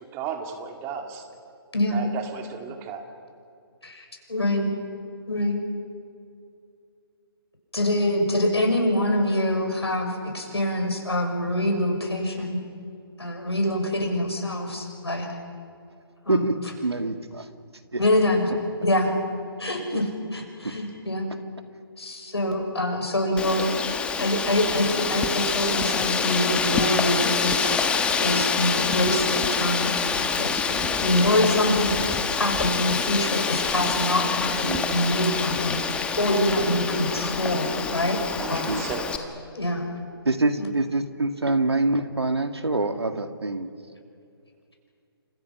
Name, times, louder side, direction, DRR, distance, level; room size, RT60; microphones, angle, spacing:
voice 1, 0.1-1.3 1.9-3.0 38.3-39.0, right 7 dB, 20° right, 4 dB, 2.3 m, -34 dB
voice 2, 1.7-2.0 3.8-4.7 5.3-5.6 7.7-12.6 13.2-15.3 16.2-16.5 18.0-18.5 18.8-19.1 19.6-21.3 22.0-23.7 24.2-27.9 28.2-29.9 30.3-38.2 38.5-38.6 39.5-39.8 40.6-40.7, left 1 dB, 90° left, 3 dB, 6.4 m, -25 dB
voice 3, 16.3-17.5 17.9-18.0 19.9-20.0 30.2-30.3 34.6-34.9 38.7-38.8 40.2-43.7, right 2 dB, 90° right, 8 dB, 2.0 m, -25 dB
Wind, 23.4-39.2, left 5 dB, 10° left, 1.3 m, -26 dB
29.0 x 26.5 x 5.9 m, 2.5 s
figure-of-eight pair, 145°, 13 cm